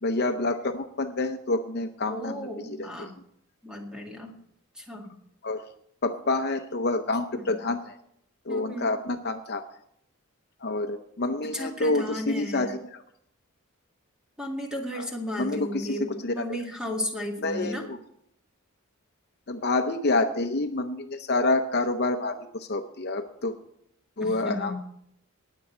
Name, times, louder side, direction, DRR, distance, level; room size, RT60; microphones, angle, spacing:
voice 1, 0.0-3.1 5.4-5.7 6.0-7.9 8.5-9.6 10.6-13.0 15.0-15.1 15.4-16.4 17.4-18.0 19.5-23.5 24.2-24.8, left 2 dB, 50° left, 7 dB, 0.7 m, -28 dB
voice 2, 2.1-3.2 3.6-4.3 4.7-5.1 7.3-7.6 8.5-8.9 11.5-12.7 14.4-17.9 24.2-24.8, equal, 5° right, 0 dB, 2.0 m, -34 dB
19.5 x 7.6 x 4.4 m, 0.73 s
head